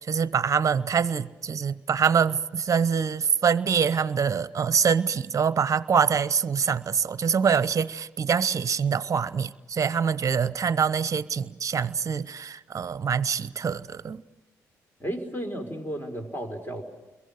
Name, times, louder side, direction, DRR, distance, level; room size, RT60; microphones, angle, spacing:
voice 1, 0.0-14.2, right 6 dB, 40° right, 17 dB, 0.8 m, -25 dB
voice 2, 15.0-16.8, equal, 25° left, 6 dB, 4.5 m, -33 dB
29.0 x 23.0 x 6.6 m, 1.1 s
hypercardioid pair, 45°, 8 cm